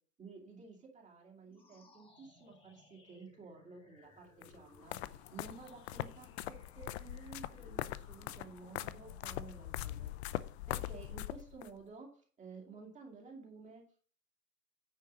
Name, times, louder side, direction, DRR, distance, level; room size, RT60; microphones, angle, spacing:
voice 1, 0.2-10.1 10.7-13.8, right 4 dB, 15° right, 0 dB, 2.4 m, -53 dB
sound 1, 1.5-11.0, left 2 dB, 10° left, 1.7 m, -64 dB
sound 2, 4.4-11.7, left 14 dB, 45° left, 0.6 m, -42 dB
9.7 x 5.7 x 5.2 m, 0.43 s
hypercardioid pair, 130°, 47 cm